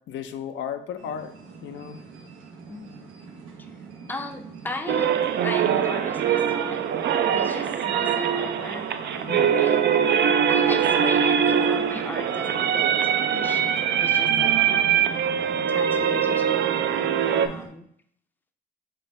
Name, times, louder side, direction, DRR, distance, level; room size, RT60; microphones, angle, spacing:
voice 1, 0.1-1.3 1.6-2.0 9.2-9.6 14.2-14.6, left 8 dB, 70° left, 8 dB, 0.4 m, -35 dB
sound 1, 1.0-17.7, right 5 dB, 90° right, 0.8 m, -41 dB
voice 2, 2.7-3.1 4.1-5.1 5.4-9.3 9.6-9.8 10.5-13.6 14.0-14.5 15.7-17.9, left 2 dB, 10° left, 5 dB, 0.5 m, -37 dB
sound 2, 4.9-17.5, right 8 dB, 60° right, 0.4 m, -22 dB
4.3 x 3.3 x 3.3 m, 0.67 s
cardioid pair, 90°, 20 cm